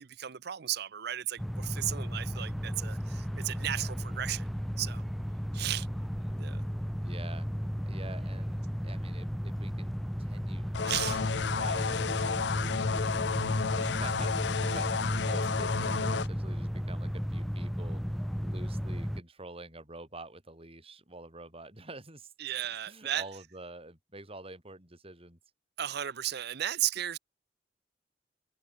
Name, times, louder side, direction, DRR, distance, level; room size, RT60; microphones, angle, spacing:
voice 1, 0.0-4.5 4.8-5.0 5.5-5.9 6.4-6.6 10.8-11.2 22.4-23.2 25.8-27.2, right 12 dB, 65° right, 0.6 m, -34 dB
sound 1, 1.4-19.2, equal, ahead, 0.4 m, -34 dB
voice 2, 5.9-6.4 7.0-7.5 7.9-10.8 11.1-13.2 13.8-22.3 22.9-25.4, right 2 dB, 35° right, 7.4 m, -48 dB
sound 2, 10.7-16.3, left 5 dB, 70° left, 0.5 m, -31 dB
head